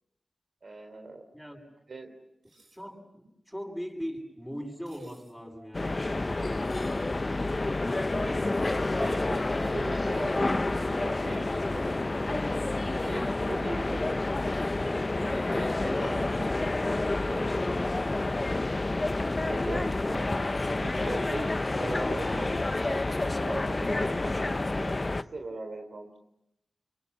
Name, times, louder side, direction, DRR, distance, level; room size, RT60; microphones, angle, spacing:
voice 1, 0.6-1.2 1.9-2.1 8.1-8.4 9.0-12.6 13.0-14.2 15.2-16.5 17.2-17.5 18.2-18.6 19.4-26.2, right 2 dB, 65° right, 4 dB, 3.5 m, -40 dB
voice 2, 1.3-1.7 2.7-7.5 13.8-14.0 15.4-16.2, equal, ahead, 2 dB, 7.9 m, -41 dB
sound 1, 2.4-2.8 4.9-5.4 6.6-7.0 8.5-8.8 10.1-10.4 11.7-11.9 12.8-13.3 14.5-14.8 15.5-15.8, right 3 dB, 85° right, 5.8 m, -62 dB
sound 2, 5.7-25.2, left 2 dB, 40° left, 0.9 m, -29 dB
25.0 x 24.5 x 8.7 m, 0.80 s
cardioid pair, 40°, 0 cm